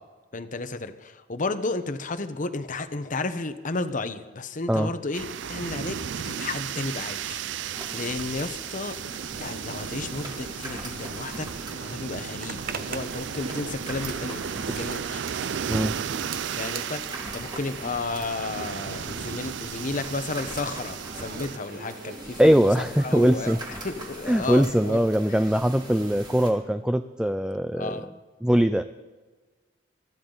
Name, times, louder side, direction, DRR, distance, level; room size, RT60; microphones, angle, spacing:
voice 1, 0.3-11.5 11.7-15.2 16.6-17.0 17.3-22.7 23.0-23.6 23.8-25.0 25.3-25.4 27.7-28.1, left 3 dB, 45° left, 10 dB, 1.0 m, -33 dB
sound 1, 5.1-21.6, right 8 dB, 70° right, 0.4 m, -34 dB
sound 2, 7.7-26.5, right 1 dB, 25° right, 2.5 m, -41 dB
Zipper (clothing), 12.4-18.6 18.8-23.8, right 6 dB, 50° right, 1.0 m, -44 dB
voice 2, 22.4-23.6 24.3-28.0 28.4-28.8, equal, 5° right, 9 dB, 0.4 m, -21 dB
24.0 x 13.5 x 4.0 m, 1.3 s
head